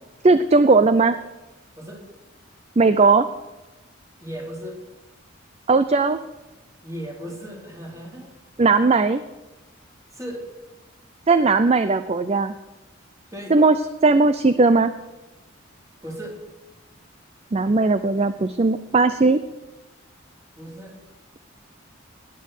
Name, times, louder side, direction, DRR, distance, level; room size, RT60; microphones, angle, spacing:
voice 1, 0.2-1.2 2.8-3.3 5.7-6.2 8.6-9.2 11.3-12.5 13.5-13.8 14.0-14.9 17.5-19.4, right 3 dB, 30° right, 12 dB, 0.5 m, -17 dB
voice 2, 4.2-4.8 6.8-8.3 10.1-10.5 13.3-13.5 16.0-16.4 20.5-21.0, equal, 15° right, -1 dB, 3.4 m, -36 dB
18.5 x 9.3 x 6.6 m, 1.1 s
head